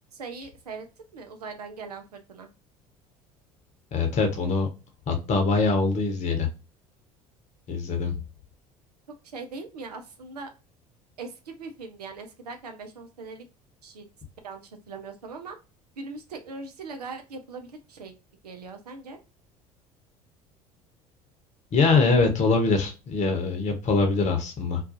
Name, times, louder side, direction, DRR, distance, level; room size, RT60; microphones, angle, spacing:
voice 1, 0.1-0.9 1.1-2.5 9.3-10.5 11.2-13.4 13.8-14.1 14.4-15.6 16.0-18.1 18.4-19.2, right 4 dB, 80° right, 5 dB, 0.4 m, -40 dB
voice 2, 3.9-4.7 5.1-6.5 7.7-8.2 21.7-24.8, left 4 dB, 35° left, 4 dB, 0.8 m, -23 dB
2.4 x 2.2 x 2.5 m, 0.30 s
figure-of-eight pair, 65°, 20 cm